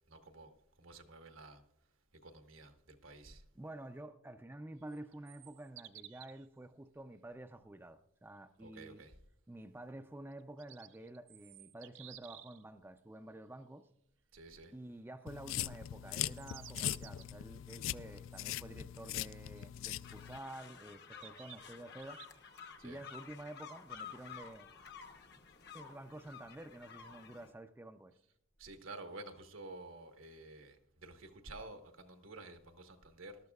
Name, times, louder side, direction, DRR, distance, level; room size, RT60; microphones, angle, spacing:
voice 1, 0.1-0.5 0.8-1.6 2.2-3.4 8.6-9.1 14.3-14.7 22.8-23.0 28.6-30.8 31.0-33.4, right 2 dB, 85° right, 1.4 m, -51 dB
voice 2, 3.5-9.1 9.5-13.9 14.7-22.2 22.5-22.6 22.8-24.7 25.7-28.1, right 1 dB, 10° right, 0.4 m, -50 dB
sound 1, 4.8-6.5 10.3-12.6 16.1-17.2 18.3-18.4 20.2-20.3 21.1-22.6, right 13 dB, 70° right, 0.6 m, -55 dB
sound 2, 15.3-20.4, left 12 dB, 80° left, 0.3 m, -41 dB
sound 3, 20.0-27.5, left 6 dB, 55° left, 1.0 m, -52 dB
20.0 x 13.0 x 2.4 m
head